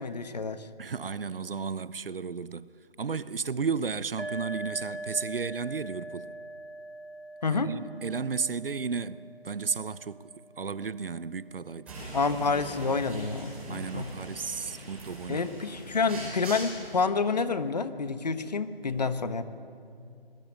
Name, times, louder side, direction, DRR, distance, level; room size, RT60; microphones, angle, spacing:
voice 1, 0.0-0.7 7.4-7.7 12.1-14.1 15.3-19.4, left 4 dB, 45° left, 1.3 m, -28 dB
voice 2, 0.8-2.7 3.0-6.3 7.5-11.9 13.7-15.5, right 5 dB, 65° right, 0.9 m, -33 dB
sound 1, 4.2-11.7, right 1 dB, 90° right, 2.1 m, -43 dB
sound 2, 11.9-17.0, right 1 dB, 5° right, 5.6 m, -42 dB
29.0 x 20.0 x 8.9 m
figure-of-eight pair, 170°, 30 cm